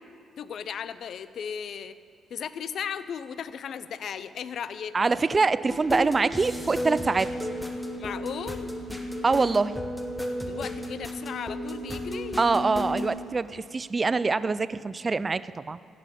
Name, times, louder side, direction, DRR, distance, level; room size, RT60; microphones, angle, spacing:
voice 1, 0.4-2.0 2.3-5.0 8.0-8.7 10.5-12.4, left 7 dB, 60° left, 14 dB, 0.5 m, -36 dB
voice 2, 4.9-7.3 9.2-9.8 12.4-15.8, right 4 dB, 30° right, 16 dB, 0.3 m, -24 dB
sound 1, 5.7-13.1, equal, 10° left, 1.1 m, -33 dB
15.5 x 6.0 x 7.5 m, 2.4 s
cardioid pair, 90°, 0 cm